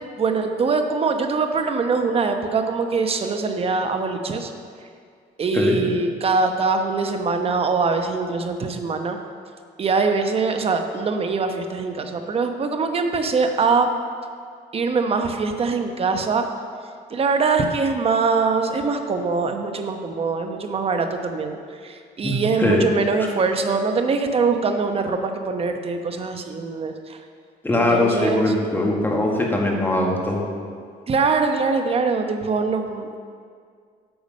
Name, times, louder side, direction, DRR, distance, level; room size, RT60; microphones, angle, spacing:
voice 1, 0.2-4.5 5.4-9.2 9.8-13.9 14.7-16.5 17.1-27.2 27.7-28.4 31.1-33.2, right 4 dB, 35° right, 5 dB, 0.9 m, -23 dB
voice 2, 22.2-22.9 27.6-30.4, left 1 dB, 10° left, -1 dB, 1.7 m, -21 dB
9.5 x 7.0 x 5.3 m, 2.1 s
cardioid pair, 110°, 17 cm